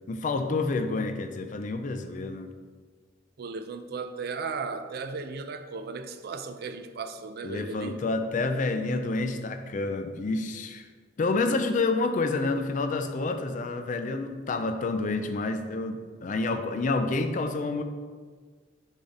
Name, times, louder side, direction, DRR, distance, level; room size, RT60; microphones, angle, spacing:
voice 1, 0.1-2.5 7.4-10.9 11.2-17.8, left 3 dB, 40° left, 0.4 m, -28 dB
voice 2, 3.4-8.0, right 4 dB, 55° right, 0.4 m, -36 dB
7.0 x 2.8 x 5.0 m
head